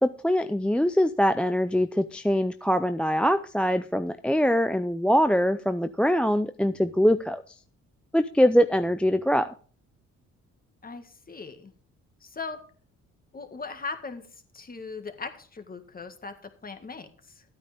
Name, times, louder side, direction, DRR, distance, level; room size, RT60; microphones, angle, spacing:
voice 1, 0.0-7.4 8.1-9.5, equal, 5° left, 10 dB, 0.5 m, -23 dB
voice 2, 10.8-11.7 12.2-12.6 13.3-14.3 14.5-17.4, left 4 dB, 30° left, 7 dB, 1.8 m, -39 dB
13.0 x 9.0 x 3.5 m, 0.42 s
cardioid pair, 90°, 30 cm